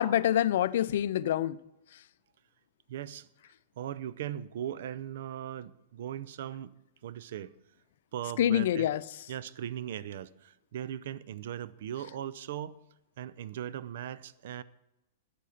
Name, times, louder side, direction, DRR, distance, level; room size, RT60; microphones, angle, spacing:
voice 1, 0.0-1.6 8.4-9.0, left 11 dB, 70° left, 0.4 m, -26 dB
voice 2, 2.9-3.3 3.8-6.7 7.0-7.5 8.1-8.9 9.3-12.8 13.2-14.6, right 10 dB, 70° right, 0.6 m, -38 dB
11.0 x 8.4 x 5.7 m
hypercardioid pair, 130°, 0 cm